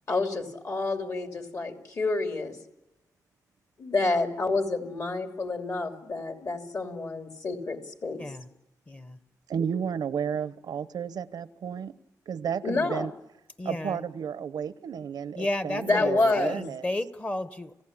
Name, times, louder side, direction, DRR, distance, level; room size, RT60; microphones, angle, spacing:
voice 1, 0.1-2.6 3.8-8.3 12.6-13.1 15.8-16.6, left 3 dB, 50° left, 5 dB, 2.9 m, -28 dB
voice 2, 8.9-9.2 13.6-14.0 15.4-17.8, left 1 dB, 20° left, 12 dB, 1.1 m, -33 dB
voice 3, 9.5-11.9 12.3-13.1 13.6-16.8, right 7 dB, 90° right, 16 dB, 0.8 m, -32 dB
29.0 x 16.5 x 8.7 m, 0.88 s
wide cardioid pair, 110°, 7 cm